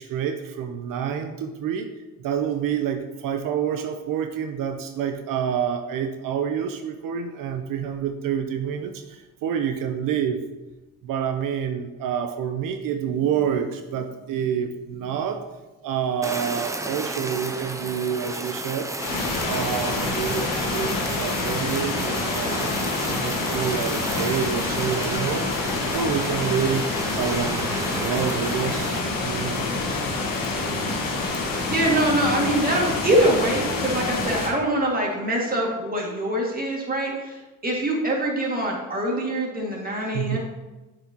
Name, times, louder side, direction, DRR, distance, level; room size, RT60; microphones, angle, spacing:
voice 1, 0.0-1.9 2.2-10.4 11.0-15.4 15.8-18.9 19.5-22.8 23.1-25.5 25.9-26.8 27.2-29.6 40.1-40.4, right 8 dB, 70° right, 7 dB, 0.6 m, -28 dB
Fire, 16.2-29.0, right 2 dB, 10° right, 0.5 m, -33 dB
sound 1, 19.0-34.5, left 3 dB, 75° left, 1.4 m, -27 dB
voice 2, 31.7-40.4, right 1 dB, 25° right, -2 dB, 1.9 m, -24 dB
7.5 x 4.8 x 2.8 m, 1.1 s
supercardioid pair, 75°, 34 cm